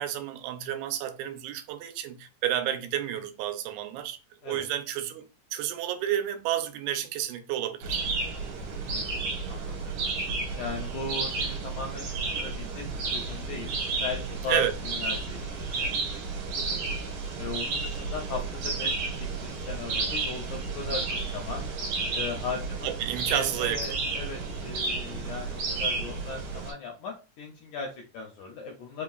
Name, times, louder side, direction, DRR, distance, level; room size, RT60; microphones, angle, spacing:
voice 1, 0.0-4.2 4.4-5.3 5.5-8.1 14.5-14.7 22.8-24.0, right 10 dB, 90° right, 2.6 m, -30 dB
sound 1, 7.8-26.7, right 3 dB, 65° right, 2.5 m, -32 dB
voice 2, 8.9-10.0 10.6-12.9 13.1-16.2 16.5-16.8 17.4-21.7 22.1-22.9 23.3-29.0, left 4 dB, 80° left, 1.8 m, -38 dB
5.6 x 3.0 x 2.4 m
omnidirectional pair, 4.3 m